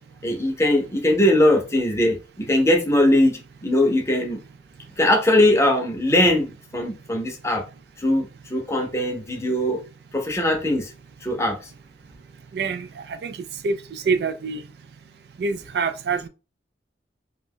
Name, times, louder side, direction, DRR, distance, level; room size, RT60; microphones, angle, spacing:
voice 1, 0.2-4.4 5.0-7.6 8.0-9.8 10.1-10.9 11.2-11.6, left 1 dB, 15° left, 0.6 m, -20 dB
voice 2, 12.5-13.4 13.6-14.6 15.4-16.3, right 4 dB, 60° right, 0.3 m, -26 dB
2.5 x 2.2 x 3.5 m
head